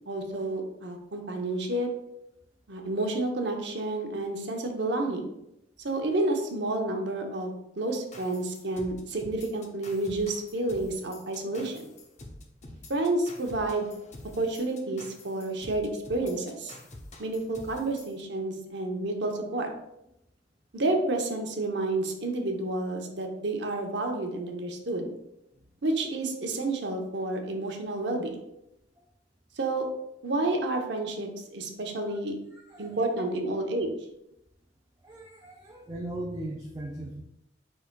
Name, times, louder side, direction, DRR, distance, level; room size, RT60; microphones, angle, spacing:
voice 1, 0.1-1.9 2.7-5.3 5.8-11.9 12.9-13.9 14.4-16.8 17.2-19.7 20.7-25.1 25.8-28.4 29.6-29.9 30.2-32.3 32.8-33.9, right 2 dB, 65° right, 3 dB, 0.8 m, -30 dB
sound 1, 8.1-18.2, left 2 dB, 40° left, 0.7 m, -47 dB
voice 2, 32.7-33.1 35.0-37.2, right 1 dB, 20° right, -2 dB, 0.5 m, -38 dB
4.9 x 4.6 x 2.2 m, 0.83 s
head